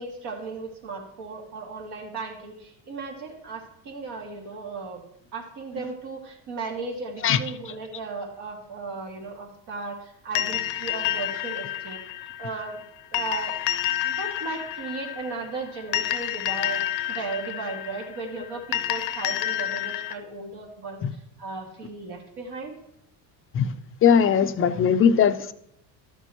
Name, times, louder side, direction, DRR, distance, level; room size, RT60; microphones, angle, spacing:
voice 1, 0.0-5.0 5.3-12.0 12.4-12.8 13.1-13.6 14.0-22.7, right 3 dB, 65° right, 0 dB, 2.3 m, -36 dB
sound 1, 10.4-20.1, left 13 dB, 80° left, 0.8 m, -29 dB
voice 2, 24.0-25.5, left 7 dB, 30° left, 11 dB, 0.5 m, -19 dB
11.5 x 6.7 x 3.0 m, 0.75 s
supercardioid pair, 100°, 44 cm